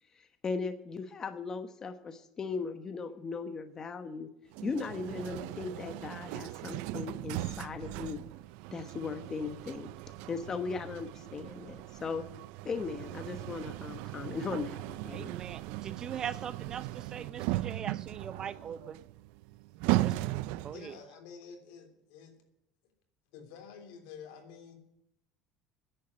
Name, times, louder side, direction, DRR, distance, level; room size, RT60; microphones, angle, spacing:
voice 1, 0.1-4.3 4.6-8.2 8.7-9.9 10.3-12.2 12.6-15.3, left 5 dB, 30° left, 9 dB, 1.0 m, -38 dB
sound 1, 4.5-20.9, right 17 dB, 75° right, 0.4 m, -37 dB
voice 2, 15.1-19.0 20.0-20.2 20.6-20.9, right 8 dB, 35° right, 15 dB, 0.8 m, -41 dB
voice 3, 20.6-22.5 23.3-24.7, left 6 dB, 80° left, 5 dB, 3.2 m, -49 dB
10.5 x 8.5 x 9.5 m, 0.82 s
cardioid pair, 125°, 2 cm